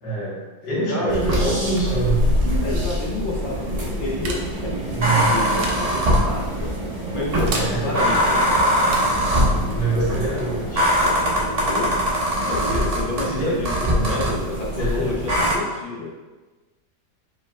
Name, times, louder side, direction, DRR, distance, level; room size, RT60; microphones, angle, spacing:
voice 1, 0.0-2.2 4.9-5.3 7.5-7.9 9.7-11.1 13.3-14.1 14.8-15.1, right 3 dB, 90° left, -6 dB, 2.0 m, -25 dB
voice 2, 0.7-1.3 2.6-6.8 7.1-8.6 11.6-12.0 12.4-16.1, left 2 dB, 65° left, -3 dB, 0.5 m, -29 dB
sound 1, 0.9-12.2, right 2 dB, 80° right, 1.3 m, -40 dB
sound 2, 1.1-15.5, equal, 65° right, 0.3 m, -22 dB
sound 3, 3.2-12.0, right 2 dB, 5° right, 0.6 m, -36 dB
4.9 x 4.2 x 2.3 m, 1.3 s
omnidirectional pair, 1.8 m